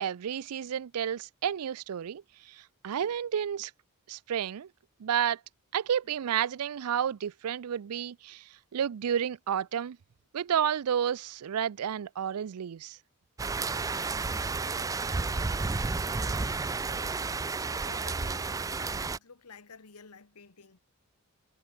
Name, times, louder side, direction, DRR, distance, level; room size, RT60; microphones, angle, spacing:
voice 1, 0.0-3.7 4.1-4.7 5.0-5.4 5.7-10.0 10.3-13.0, right 9 dB, 85° right, 0.4 m, -31 dB
sound 1, 13.4-19.2, right 4 dB, 15° right, 0.3 m, -31 dB
voice 2, 13.9-15.5 16.2-20.8, left 5 dB, 90° left, 1.4 m, -53 dB
head